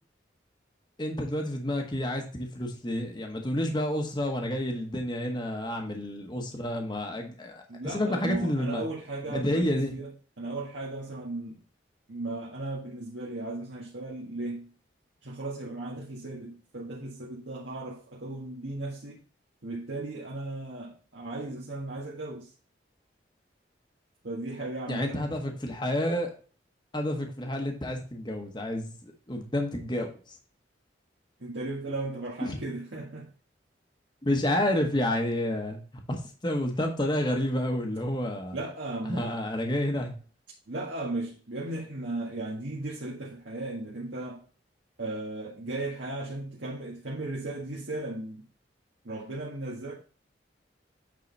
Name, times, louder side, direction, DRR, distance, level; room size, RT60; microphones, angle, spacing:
voice 1, 1.0-8.8 9.3-9.9 24.9-26.3 26.9-28.9 29.3-30.4 32.4-32.6 34.2-35.8 36.1-38.6 39.0-40.1, left 1 dB, 25° left, 3 dB, 1.0 m, -29 dB
voice 2, 7.7-10.1 10.4-11.6 12.1-14.7 15.2-19.2 19.6-22.5 24.2-25.3 31.4-33.3 38.5-39.4 40.7-44.4 45.0-48.4 49.0-49.9, right 2 dB, 80° right, -4 dB, 1.7 m, -36 dB
8.5 x 3.8 x 4.0 m, 0.39 s
head